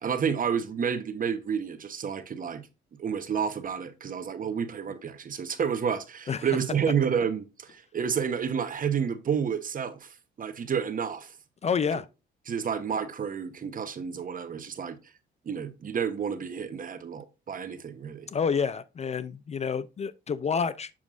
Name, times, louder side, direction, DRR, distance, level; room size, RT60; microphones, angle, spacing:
voice 1, 0.0-2.7 3.0-11.3 12.5-15.0 15.5-18.3, right 7 dB, 45° right, 1.0 m, -30 dB
voice 2, 11.6-12.1 18.3-20.9, left 6 dB, 35° left, 0.4 m, -28 dB
7.3 x 6.0 x 2.5 m
cardioid pair, 90°, 20 cm